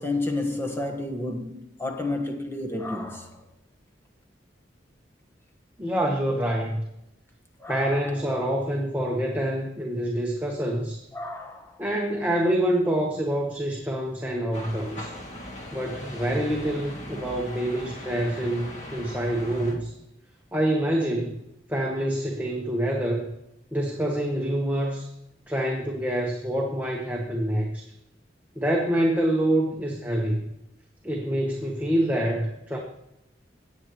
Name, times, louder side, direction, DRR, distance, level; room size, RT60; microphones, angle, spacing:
voice 1, 0.0-3.4 7.6-8.2 11.1-11.8, left 2 dB, 15° left, 1.4 m, -31 dB
voice 2, 5.8-6.8 7.7-11.0 11.8-15.1 15.7-19.9 20.5-21.4 21.7-23.3 23.7-25.1 25.5-27.9 28.5-30.4 31.0-32.8, right 1 dB, 10° right, 1.2 m, -26 dB
sound 1, 14.5-19.8, equal, 40° left, 2.0 m, -39 dB
18.5 x 7.9 x 3.1 m
head